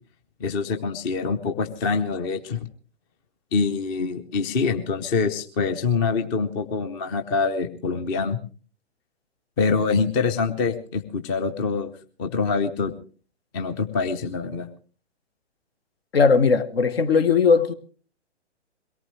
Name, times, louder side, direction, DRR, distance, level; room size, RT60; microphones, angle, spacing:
voice 1, 0.4-2.7 3.5-8.4 9.6-11.9 12.2-12.9 13.5-14.7, left 4 dB, 20° left, 0.7 m, -25 dB
voice 2, 16.1-17.7, left 5 dB, 55° left, 1.3 m, -18 dB
22.5 x 18.0 x 3.1 m
figure-of-eight pair, 125°, 35 cm